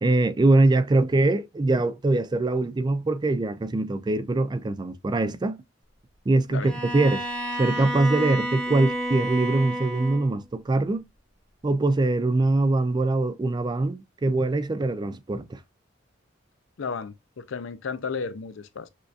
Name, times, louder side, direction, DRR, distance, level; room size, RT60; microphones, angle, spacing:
voice 1, 0.0-5.6 6.3-7.3 7.6-11.1 11.6-15.6, right 2 dB, 20° right, 0.3 m, -23 dB
Bowed string instrument, 6.6-10.4, right 1 dB, 5° left, 0.9 m, -30 dB
voice 2, 16.8-18.9, left 5 dB, 80° left, 0.5 m, -33 dB
6.3 x 2.6 x 2.4 m
head